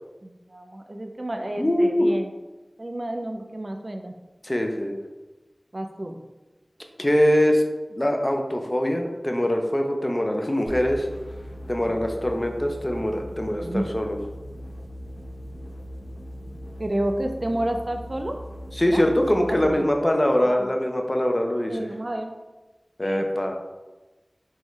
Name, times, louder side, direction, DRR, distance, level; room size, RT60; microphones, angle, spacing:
voice 1, 0.2-2.3 2.8-4.1 5.7-6.2 11.9-12.0 13.6-13.9 16.8-18.4 18.8-19.0 19.5-19.9 20.4-20.7 21.7-22.3 23.0-23.3, right 1 dB, 50° right, 4 dB, 0.4 m, -30 dB
voice 2, 1.6-2.1 4.4-4.9 7.0-7.6 7.9-11.1 11.7-14.2 18.8-21.8 23.0-23.6, equal, 30° left, 3 dB, 0.5 m, -23 dB
sound 1, 10.7-19.8, equal, 55° left, 0.8 m, -39 dB
3.6 x 3.1 x 3.1 m, 1.1 s
wide cardioid pair, 45°, 0 cm